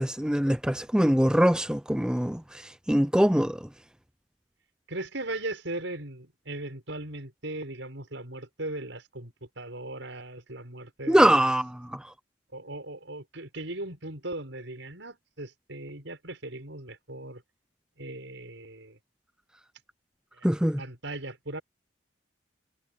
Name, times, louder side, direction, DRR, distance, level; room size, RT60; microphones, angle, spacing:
voice 1, 0.0-2.6 2.9-3.6 11.1-12.0 20.4-20.8, equal, 5° right, 0.5 m, -23 dB
voice 2, 4.9-11.5 12.5-17.4 18.0-19.0 20.3-21.6, right 2 dB, 75° right, 6.1 m, -38 dB
head